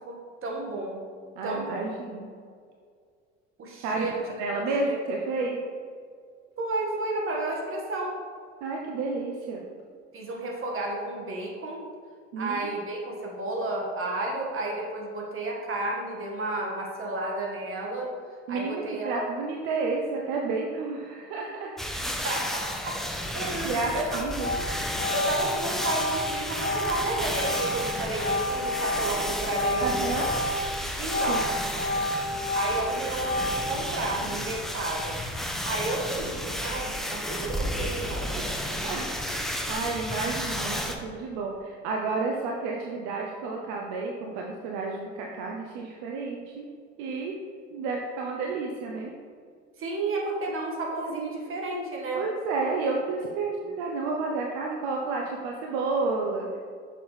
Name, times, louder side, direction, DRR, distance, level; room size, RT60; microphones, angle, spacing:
voice 1, 0.0-1.0 1.4-2.0 3.6-4.2 4.5-5.0 6.6-8.1 10.1-11.9 12.4-18.1 18.5-19.2 22.2-23.0 23.3-24.5 25.1-30.1 30.5-30.6 31.0-31.5 32.5-35.2 35.6-38.7 39.6-39.8 49.8-52.3, right 2 dB, 40° right, -1 dB, 1.8 m, -32 dB
voice 2, 1.4-2.3 3.8-5.6 8.6-9.6 12.3-12.6 18.5-21.7 23.6-24.5 29.8-30.3 31.3-31.5 38.3-46.7 47.0-47.3 47.7-49.1 52.1-56.6, right 3 dB, 65° right, 0 dB, 0.8 m, -31 dB
sound 1, 21.8-41.0, equal, ahead, 0.8 m, -32 dB
Organ, 23.8-24.1 24.4-30.7 31.0-33.9, left 1 dB, 25° left, 1.0 m, -30 dB
6.9 x 6.1 x 3.3 m, 2.1 s
hypercardioid pair, 65°, 33 cm